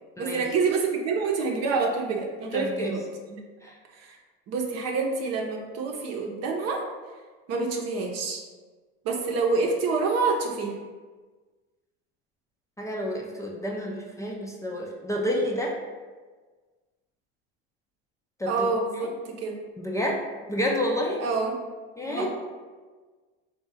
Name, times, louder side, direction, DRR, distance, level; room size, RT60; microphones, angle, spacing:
voice 1, 0.2-3.4 3.9-4.2 4.5-6.8 7.5-8.4 9.0-10.7 18.5-19.6 21.2-21.5 22.0-22.3, right 4 dB, 55° right, 1 dB, 0.8 m, -27 dB
voice 2, 2.5-3.0 3.6-3.8 12.8-15.8 18.4-18.5 19.0-19.1 19.8-20.2 20.5-21.2 22.0-22.3, left 1 dB, 10° left, -2 dB, 0.4 m, -29 dB
3.7 x 2.3 x 4.1 m, 1.4 s
supercardioid pair, 100°, 30 cm